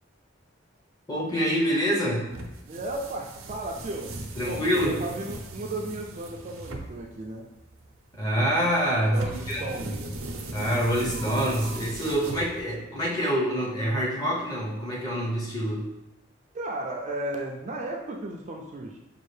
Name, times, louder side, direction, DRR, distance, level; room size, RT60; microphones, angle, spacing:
voice 1, 1.1-2.3 4.4-5.0 8.2-9.2 9.5-9.6 10.5-15.9, equal, 20° left, -4 dB, 0.7 m, -26 dB
sound 1, 2.3-12.9, right 2 dB, 90° right, 0.5 m, -38 dB
voice 2, 2.7-7.4 9.1-10.3 16.5-19.0, right 2 dB, 35° right, 0 dB, 0.4 m, -35 dB
5.4 x 2.4 x 3.2 m, 0.95 s
head